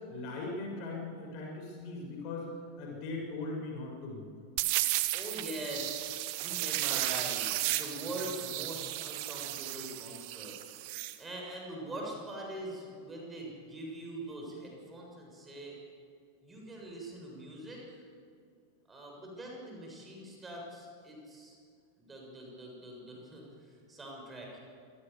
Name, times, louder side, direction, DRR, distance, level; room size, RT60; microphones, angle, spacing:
voice 1, 0.1-2.5 2.8-4.3, left 3 dB, 45° left, 0 dB, 6.7 m, -39 dB
sound 1, 4.6-11.2, right 17 dB, 45° right, 1.3 m, -34 dB
voice 2, 5.1-10.6 11.2-15.8 16.4-18.0 18.9-21.6 22.0-24.6, right 1 dB, 15° right, -1 dB, 7.0 m, -43 dB
27.5 x 18.5 x 7.2 m, 2.2 s
figure-of-eight pair, 90°, 0 cm